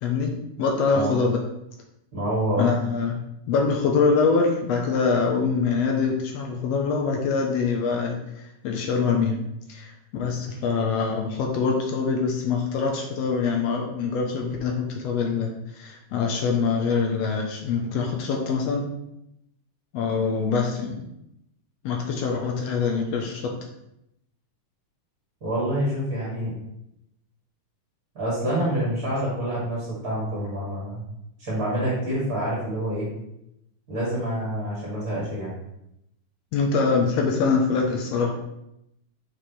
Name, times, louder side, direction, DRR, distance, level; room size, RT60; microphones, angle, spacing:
voice 1, 0.0-0.3 0.6-1.4 2.6-3.2 3.5-9.4 9.7-18.8 19.9-21.1 21.8-23.5 36.5-38.3, left 5 dB, 75° left, 1 dB, 1.6 m, -24 dB
voice 2, 2.1-2.7 25.4-26.5 28.1-31.0 31.4-33.1 33.9-35.5, right 1 dB, 30° right, -8 dB, 2.6 m, -27 dB
6.3 x 6.1 x 3.2 m, 0.82 s
omnidirectional pair, 3.7 m